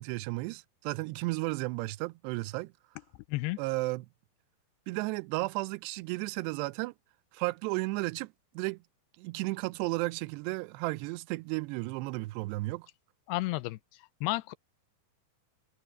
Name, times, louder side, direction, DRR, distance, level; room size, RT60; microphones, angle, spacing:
voice 1, 0.0-2.7 3.6-4.1 4.9-6.9 7.3-8.8 9.2-12.9, right 23 dB, 90° right, 2.7 m, -33 dB
voice 2, 13.3-13.8 14.2-14.5, left 19 dB, 85° left, 2.6 m, -31 dB
omnidirectional pair, 4.8 m